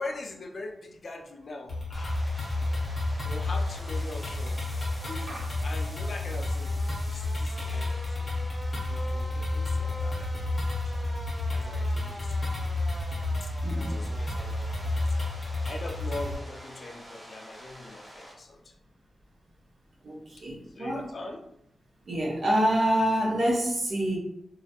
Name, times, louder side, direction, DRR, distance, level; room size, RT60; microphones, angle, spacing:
voice 1, 0.0-2.3 3.2-4.6 5.1-5.3 5.6-8.3 8.8-10.3 10.7-11.1 11.5-12.6 13.2-13.5 13.8-14.7 15.1-15.2 15.6-18.6 20.8-21.4, left 2 dB, 45° left, 1 dB, 0.4 m, -41 dB
sound 1, 1.7-16.3, left 2 dB, 25° left, 1.0 m, -31 dB
sound 2, 1.9-18.3, equal, 15° right, 0.8 m, -45 dB
voice 2, 20.0-21.1 22.1-24.2, equal, 55° right, -3 dB, 0.7 m, -27 dB
2.3 x 2.0 x 2.8 m, 0.74 s
wide cardioid pair, 145°, 0 cm